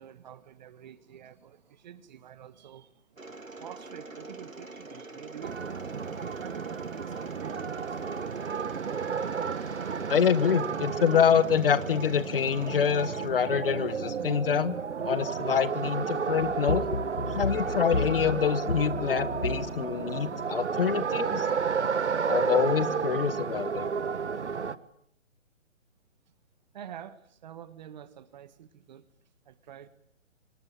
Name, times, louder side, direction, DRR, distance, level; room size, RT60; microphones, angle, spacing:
voice 1, 0.0-8.7 26.7-29.1 29.4-29.9, right 9 dB, 35° right, 14 dB, 1.7 m, -48 dB
Mechanisms, 3.2-13.3, right 3 dB, 85° right, 2.2 m, -44 dB
sound 1, 5.4-24.8, right 6 dB, 60° right, 1.6 m, -32 dB
voice 2, 10.1-14.7 15.0-16.8 17.3-21.5 22.3-23.9, left 8 dB, 45° left, 16 dB, 1.5 m, -26 dB
sound 2, 16.4-20.5, left 3 dB, 85° left, 1.9 m, -33 dB
25.5 x 21.0 x 9.1 m, 0.68 s
figure-of-eight pair, 135°, 39 cm